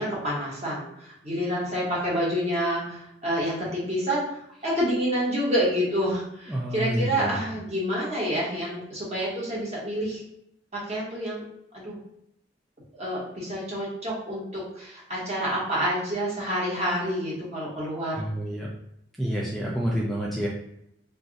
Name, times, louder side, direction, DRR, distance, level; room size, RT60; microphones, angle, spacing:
voice 1, 0.0-4.4 4.6-10.2 10.7-11.4 11.7-12.0 13.0-18.2, equal, 40° right, -6 dB, 1.3 m, -28 dB
voice 2, 6.5-7.4 18.1-18.7 19.2-20.5, equal, ahead, -5 dB, 0.4 m, -28 dB
2.5 x 2.3 x 3.9 m, 0.78 s
head